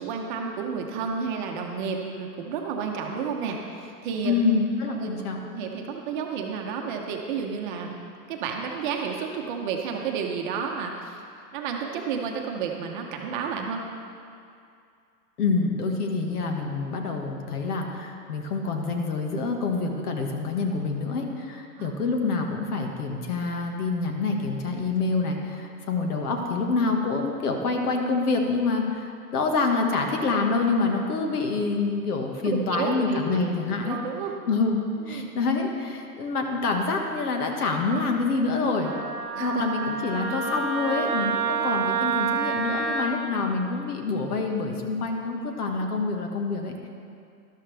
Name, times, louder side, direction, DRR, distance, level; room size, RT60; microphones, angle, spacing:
voice 1, 0.0-4.4 4.9-5.2 5.5-8.0 8.3-11.2 11.5-13.9 21.8-21.9 32.4-33.4 33.8-34.3 35.1-35.3 39.4-39.6, right 6 dB, 30° right, 1 dB, 1.0 m, -31 dB
voice 2, 4.2-5.4 15.4-34.0 34.5-34.8 35.1-38.9 39.4-46.9, left 3 dB, 65° left, 2 dB, 1.8 m, -26 dB
Wind instrument woodwind instrument, 38.8-43.1, right 5 dB, 15° right, 0.4 m, -28 dB
13.0 x 12.0 x 3.4 m, 2.4 s
hypercardioid pair, 150°, 49 cm